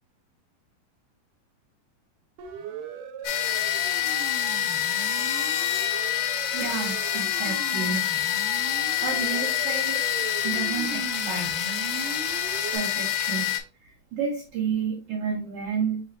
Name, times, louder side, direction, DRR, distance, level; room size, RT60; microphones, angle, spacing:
Siren, 2.4-12.8, right 6 dB, 85° right, 2.4 m, -38 dB
sound 1, 3.2-13.6, left 12 dB, 85° left, 2.3 m, -27 dB
voice 1, 6.5-8.0 8.5-8.8 9.0-10.0 10.4-11.5 12.7-13.6 13.8-16.0, right 6 dB, 70° right, -1 dB, 1.5 m, -31 dB
6.1 x 3.2 x 2.6 m, 0.35 s
omnidirectional pair, 3.8 m